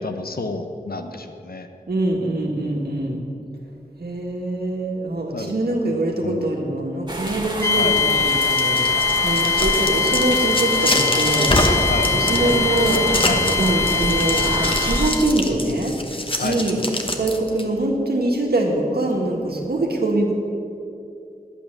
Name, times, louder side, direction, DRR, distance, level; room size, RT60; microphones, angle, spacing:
voice 1, 0.0-1.7 5.3-5.5 6.2-6.5 7.7-7.9 11.9-12.1 12.4-12.7 13.3-13.4 16.4-16.6, left 3 dB, 75° left, 6 dB, 0.9 m, -29 dB
voice 2, 1.9-3.2 4.0-11.5 12.1-13.0 13.6-15.9 16.4-16.8 17.2-20.3, right 2 dB, 90° right, 0 dB, 1.7 m, -23 dB
sound 1, 7.1-15.1, right 1 dB, 30° right, 1.6 m, -27 dB
sound 2, 7.6-15.3, left 5 dB, 20° left, 0.4 m, -22 dB
sound 3, 8.3-17.6, left 1 dB, 35° left, 1.2 m, -26 dB
10.5 x 8.5 x 6.6 m, 2.6 s
wide cardioid pair, 55°, 16 cm